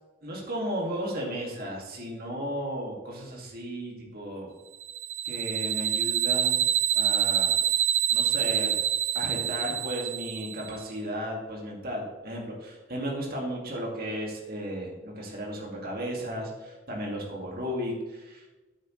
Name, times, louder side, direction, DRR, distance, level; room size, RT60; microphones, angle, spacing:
voice 1, 0.2-4.5 5.2-6.7 6.9-7.5 8.1-8.8 9.1-18.4, equal, 45° right, -2 dB, 2.2 m, -34 dB
sound 1, 4.8-10.8, right 10 dB, 70° right, 0.7 m, -26 dB
13.5 x 7.5 x 3.2 m, 1.2 s
head